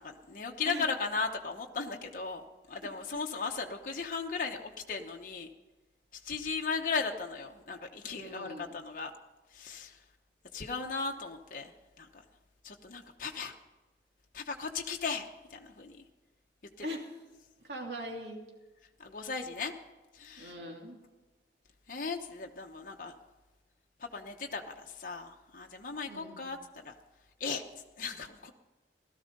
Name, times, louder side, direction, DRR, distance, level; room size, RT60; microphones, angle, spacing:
voice 1, 0.0-2.4 2.7-5.5 6.1-9.1 9.5-10.0 10.5-12.2 12.6-13.5 14.3-16.0 19.0-19.7 20.1-20.5 21.9-23.1 24.0-26.6 26.8-26.9 27.4-27.6 28.0-28.5, left 4 dB, 50° left, 2 dB, 1.0 m, -37 dB
voice 2, 8.0-8.7 16.8-17.1 17.6-18.4 20.4-21.0 26.1-26.5, equal, 75° right, 0 dB, 2.9 m, -41 dB
16.5 x 13.0 x 5.3 m, 1.2 s
head